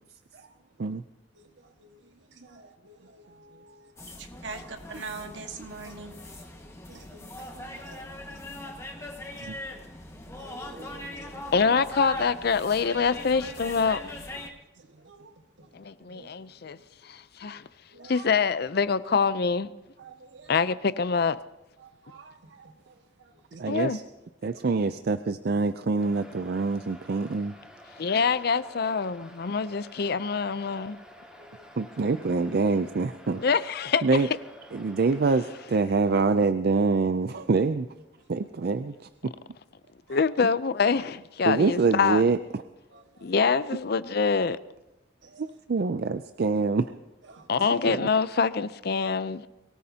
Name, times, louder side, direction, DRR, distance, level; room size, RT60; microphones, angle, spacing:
voice 1, 1.3-2.0 2.3-3.9 4.2-6.2 6.5-8.5 9.4-9.5 10.4-11.5 15.0-15.7 16.1-16.3 16.6-16.8 17.5-17.6 17.9-18.3 20.0-20.5 21.8-23.4 24.5-24.6 31.4-31.7 34.8-35.0 40.1-40.2 42.9-43.3 45.2-45.5 47.3-47.6, right 4 dB, 85° right, 1.7 m, -46 dB
sound 1, 4.0-14.5, left 1 dB, 15° left, 1.6 m, -41 dB
voice 2, 11.5-14.0 15.7-16.8 17.0-17.7 18.0-19.7 20.5-21.4 23.7-24.0 28.0-31.0 33.4-34.0 40.1-42.2 43.2-44.6 47.5-49.5, left 5 dB, 60° left, 0.5 m, -25 dB
voice 3, 23.5-24.0 24.4-27.6 31.8-33.4 34.0-34.3 34.7-37.9 38.3-38.9 41.4-42.6 45.4-46.9 47.9-48.1, right 4 dB, 60° right, 0.5 m, -25 dB
sound 2, 26.0-35.7, equal, 5° right, 3.2 m, -50 dB
23.5 x 18.0 x 2.9 m
head